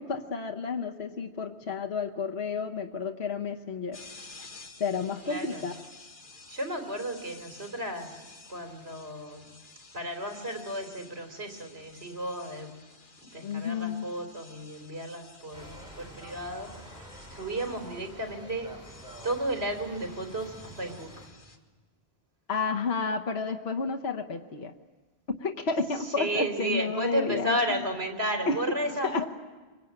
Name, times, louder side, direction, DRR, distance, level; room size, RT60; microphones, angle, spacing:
voice 1, 0.0-4.0 4.8-5.7 13.4-14.1 22.5-24.7 25.3-27.8 28.5-28.6 29.0-29.2, left 4 dB, 75° left, 3 dB, 1.3 m, -31 dB
sound 1, 3.9-21.6, left 3 dB, 50° left, 1.9 m, -52 dB
voice 2, 5.2-5.7 6.5-9.5 9.9-12.8 13.2-18.7 19.2-21.1 26.2-29.3, right 1 dB, 75° right, 3 dB, 3.7 m, -33 dB
sound 2, 15.5-21.3, equal, 5° right, 6.1 m, -47 dB
26.0 x 23.5 x 8.9 m, 1.3 s
omnidirectional pair, 1.1 m